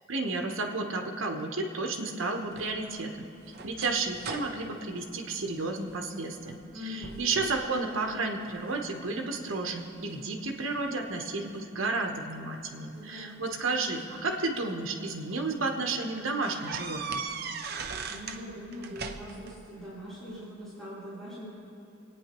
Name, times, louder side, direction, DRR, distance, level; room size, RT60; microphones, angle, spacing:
voice 1, 0.1-3.3 3.6-17.2, right 3 dB, 85° right, 2 dB, 1.1 m, -32 dB
sound 1, 2.5-6.0 6.4-6.7 7.0-7.7 8.1-8.9 9.5-10.9 12.1-12.2 13.4-14.8 15.3-15.5 15.8-15.9 16.4-18.4 18.7-19.5, right 5 dB, 55° right, 0.7 m, -40 dB
voice 2, 6.7-7.2 12.9-13.4 18.1-21.5, left 1 dB, ahead, -13 dB, 3.6 m, -42 dB
26.0 x 9.4 x 3.0 m, 2.9 s
head